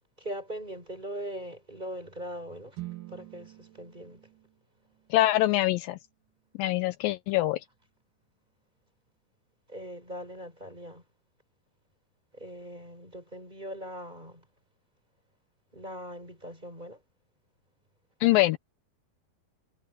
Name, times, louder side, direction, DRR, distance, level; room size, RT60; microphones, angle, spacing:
voice 1, 0.2-2.8 3.1-4.2 9.7-11.0 12.3-14.4 15.7-17.0, equal, 10° right, 5.0 m, -40 dB
sound 1, 2.7-6.8, right 17 dB, 60° right, 4.0 m, -47 dB
voice 2, 5.1-6.0 6.6-7.6 18.2-18.6, left 16 dB, 80° left, 2.3 m, -24 dB
omnidirectional pair, 4.3 m